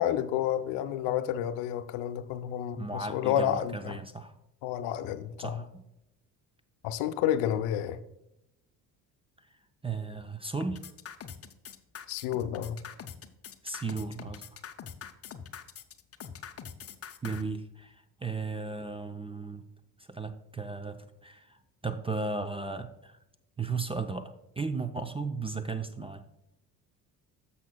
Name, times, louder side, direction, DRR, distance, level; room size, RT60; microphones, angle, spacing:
voice 1, 0.0-4.0 4.6-5.6 6.8-8.0 12.1-12.8, left 10 dB, 65° left, 12 dB, 0.7 m, -30 dB
voice 2, 2.8-4.4 5.4-5.8 9.8-10.8 13.6-14.4 17.2-19.7 20.1-21.6 21.8-23.2 23.6-26.2, right 4 dB, 10° right, 9 dB, 0.5 m, -35 dB
sound 1, 10.6-17.4, left 7 dB, 30° left, 0.7 m, -43 dB
14.0 x 5.8 x 2.3 m, 0.86 s
hypercardioid pair, 55°, 49 cm